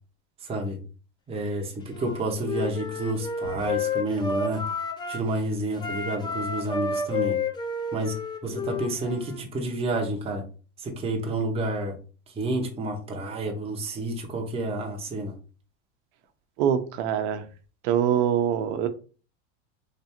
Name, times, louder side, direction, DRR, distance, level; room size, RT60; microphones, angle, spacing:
voice 1, 0.4-0.8 1.3-4.6 5.1-7.4 7.9-8.1 8.4-10.5 10.8-12.0 12.4-15.3, right 2 dB, 15° right, 0.8 m, -29 dB
Wind instrument woodwind instrument, 1.9-5.3 5.7-9.4, left 4 dB, 10° left, 0.4 m, -31 dB
voice 2, 16.6-17.5 17.8-18.9, right 9 dB, 70° right, 0.8 m, -24 dB
3.4 x 2.6 x 4.3 m
supercardioid pair, 140°, 36 cm